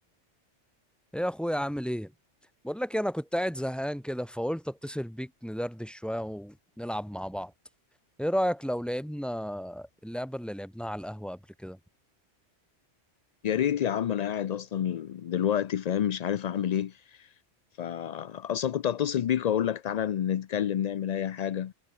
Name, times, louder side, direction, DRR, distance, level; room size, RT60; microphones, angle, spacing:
voice 1, 1.1-2.1 2.6-7.5 8.2-11.8, equal, ahead, 3.0 m, -32 dB
voice 2, 13.4-17.3 17.8-21.7, left 9 dB, 80° left, 0.3 m, -29 dB
omnidirectional pair, 1.2 m